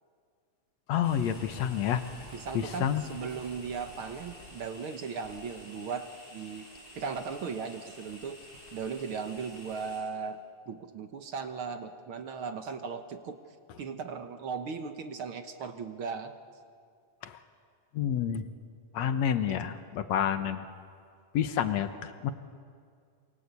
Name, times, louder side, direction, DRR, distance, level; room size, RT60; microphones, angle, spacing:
voice 1, 0.9-2.0 2.5-3.0 17.2-17.4 17.9-18.5 18.9-20.6 21.3-22.3, left 9 dB, 65° left, 9 dB, 2.0 m, -29 dB
sound 1, 1.0-10.0, left 1 dB, 15° left, 6.7 m, -50 dB
voice 2, 2.3-6.7 6.9-8.4 8.7-10.4 10.7-13.4 13.8-16.3 19.5-19.6, right 5 dB, 60° right, 8 dB, 1.5 m, -37 dB
28.0 x 24.5 x 8.3 m, 2.2 s
omnidirectional pair, 3.8 m